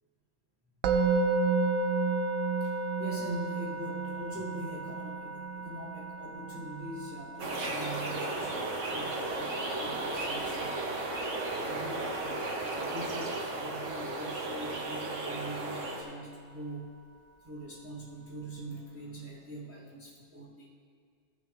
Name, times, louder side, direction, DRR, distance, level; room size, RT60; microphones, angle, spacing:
Musical instrument, 0.8-11.9, right 4 dB, 85° right, 1.0 m, -33 dB
voice 1, 2.6-10.8 11.1-16.9 17.4-20.7, right 1 dB, 15° right, -3 dB, 0.6 m, -43 dB
sound 1, 7.4-16.0, right 2 dB, 70° right, 1.3 m, -34 dB
15.0 x 6.1 x 3.6 m, 2.2 s
omnidirectional pair, 1.4 m